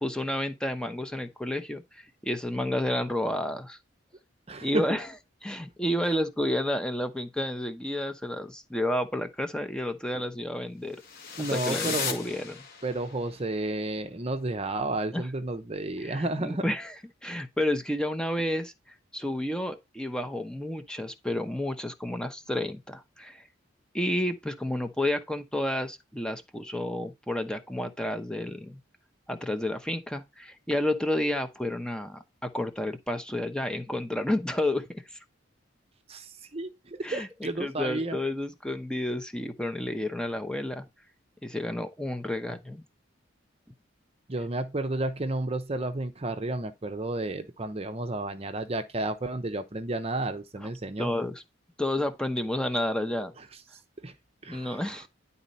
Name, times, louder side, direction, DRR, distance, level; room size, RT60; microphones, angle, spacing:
voice 1, 0.0-3.8 4.6-5.1 5.4-11.0 11.5-12.5 15.1-15.3 16.0-16.9 17.2-18.7 19.1-23.4 23.9-28.8 29.3-35.2 37.0-40.8 41.4-42.8 50.6-50.7 51.0-51.4 51.8-53.3 54.5-55.1, left 1 dB, 5° left, 0.8 m, -31 dB
voice 2, 4.5-5.0 11.4-12.2 12.8-16.6 36.1-38.2 44.3-51.1 54.0-54.1 54.4-54.9, right 2 dB, 30° right, 0.8 m, -32 dB
sound 1, 11.0-13.2, left 6 dB, 50° left, 2.4 m, -35 dB
11.0 x 4.2 x 4.0 m
head